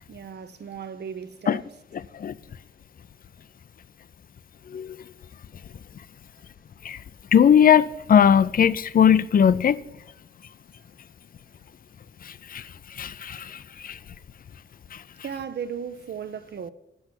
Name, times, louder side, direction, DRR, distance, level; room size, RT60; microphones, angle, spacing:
voice 1, 0.1-1.6 15.2-16.7, right 7 dB, 55° right, 0.6 m, -35 dB
voice 2, 7.3-9.8 12.3-12.6 13.0-14.0, left 8 dB, 45° left, 0.4 m, -19 dB
7.9 x 5.9 x 7.3 m
cardioid pair, 80°, 20 cm